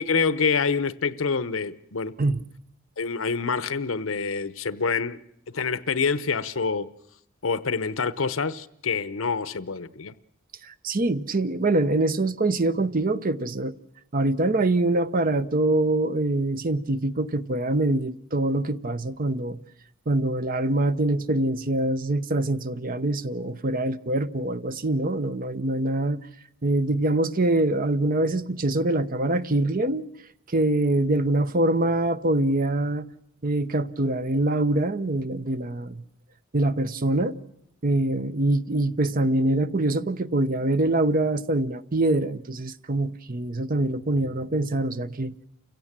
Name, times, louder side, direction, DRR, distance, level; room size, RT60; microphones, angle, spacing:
voice 1, 0.0-2.1 3.0-5.2 5.5-6.9 7.4-10.1, left 5 dB, 75° left, 0.9 m, -26 dB
voice 2, 10.6-13.7 14.1-19.6 20.1-26.2 26.6-30.0 30.5-33.1 33.4-36.0 36.5-37.4 37.8-45.3, right 2 dB, 45° right, 0.8 m, -24 dB
29.5 x 16.5 x 7.4 m
head